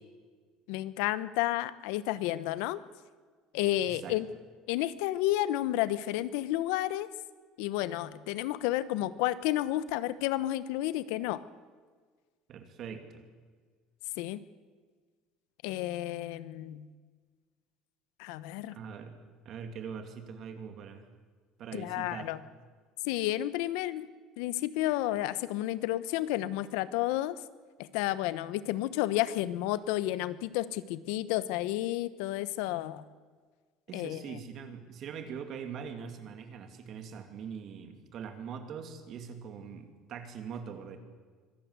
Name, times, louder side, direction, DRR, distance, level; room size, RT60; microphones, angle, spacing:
voice 1, 0.7-2.8 3.5-4.3 4.7-7.1 7.6-11.4 14.2-14.4 15.6-16.9 18.2-18.8 21.7-22.4 23.0-24.1 24.4-27.4 27.8-33.0 33.9-34.4, left 15 dB, 80° left, 15 dB, 1.0 m, -31 dB
voice 2, 3.9-4.2 12.5-13.2 18.7-19.1 19.4-21.0 21.6-22.3 33.9-41.0, right 7 dB, 40° right, 7 dB, 2.6 m, -42 dB
24.5 x 17.5 x 8.2 m, 1.5 s
cardioid pair, 165°, 0 cm